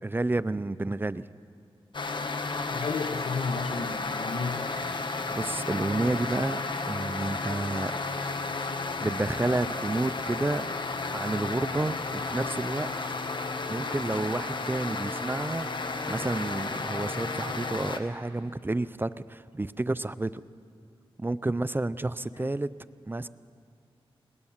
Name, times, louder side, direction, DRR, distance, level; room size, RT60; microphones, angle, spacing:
voice 1, 0.0-1.3 5.3-6.6 6.9-7.9 9.0-10.6 11.1-12.9 13.7-15.7 16.1-20.3 21.2-22.7 23.1-23.3, right 2 dB, 20° right, 15 dB, 0.4 m, -30 dB
sound 1, 1.9-18.0, left 3 dB, 50° left, 1.3 m, -33 dB
voice 2, 2.7-4.7 22.4-22.5, left 4 dB, 90° left, 9 dB, 1.1 m, -33 dB
20.5 x 19.5 x 7.2 m, 2.2 s
wide cardioid pair, 90°, 10 cm